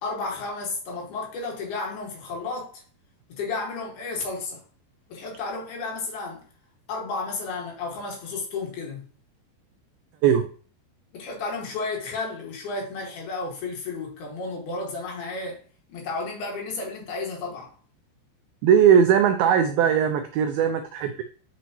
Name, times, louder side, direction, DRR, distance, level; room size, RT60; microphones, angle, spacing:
voice 1, 0.0-2.8 3.3-4.6 5.1-6.4 6.9-9.0 11.1-15.6 15.9-17.7, left 3 dB, 65° left, 3.6 m, -32 dB
voice 2, 18.6-21.2, right 8 dB, 85° right, 2.1 m, -19 dB
9.1 x 5.1 x 3.0 m
omnidirectional pair, 4.9 m